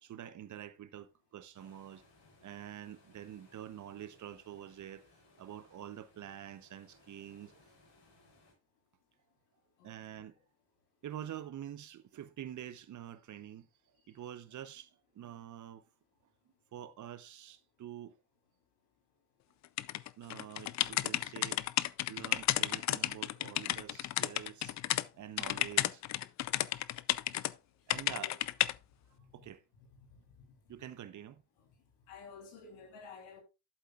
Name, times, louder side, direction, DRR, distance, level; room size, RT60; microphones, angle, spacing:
voice 1, 0.0-2.0 2.4-5.0 5.4-7.5 9.8-10.3 11.0-13.7 14.1-15.8 16.7-18.1 20.2-21.6 22.1-24.8 25.1-26.0 27.9-28.3 29.3-29.6 30.7-31.4, right 11 dB, 45° right, 1.0 m, -47 dB
sound 1, 1.5-8.5, left 2 dB, 60° left, 5.9 m, -65 dB
voice 2, 9.8-10.3 28.1-28.3 29.2-29.5 29.8-30.6 32.1-33.4, left 5 dB, 80° left, 3.5 m, -53 dB
sound 2, 19.8-25.0 25.4-27.5 27.9-28.7, left 14 dB, 40° left, 0.5 m, -32 dB
12.0 x 7.6 x 2.4 m
supercardioid pair, 80°, 42 cm